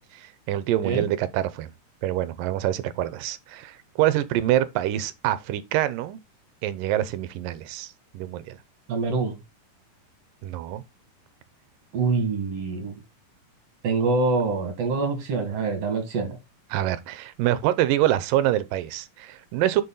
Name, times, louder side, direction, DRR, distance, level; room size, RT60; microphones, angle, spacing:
voice 1, 0.1-1.7 2.0-6.2 6.6-8.6 10.4-10.8 16.7-19.8, right 13 dB, 80° right, 2.4 m, -25 dB
voice 2, 8.9-9.4 11.9-13.0 13.8-16.4, right 4 dB, 50° right, 3.0 m, -25 dB
6.9 x 6.4 x 3.9 m
omnidirectional pair, 3.9 m